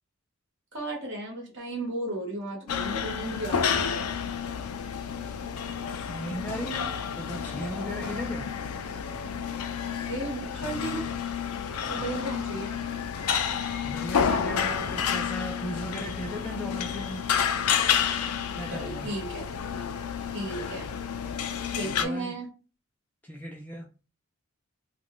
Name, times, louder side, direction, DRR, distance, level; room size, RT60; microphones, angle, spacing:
voice 1, 0.7-3.6 3.9-4.0 8.0-8.5 10.1-11.1 11.8-12.8 18.7-19.4 20.3-20.9 21.8-22.5, right 1 dB, 55° right, 1.1 m, -34 dB
sound 1, 2.7-22.1, left 7 dB, 85° left, 0.4 m, -30 dB
voice 2, 6.1-8.5 13.8-17.3 18.5-19.1 21.8-22.4 23.2-23.9, equal, 5° left, 0.3 m, -37 dB
2.4 x 2.1 x 3.5 m
head